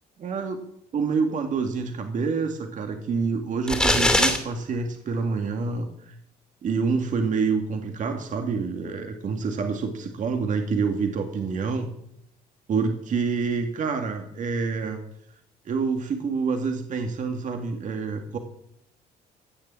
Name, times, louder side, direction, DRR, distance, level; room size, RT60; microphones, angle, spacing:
voice 1, 0.2-0.6 0.9-6.1 6.6-11.9 12.7-15.0 15.7-18.4, right 5 dB, 50° right, 4 dB, 2.1 m, -27 dB
sound 1, 3.7-4.4, left 1 dB, 5° left, 2.9 m, -20 dB
16.5 x 6.9 x 8.9 m, 0.73 s
cardioid pair, 110°, 17 cm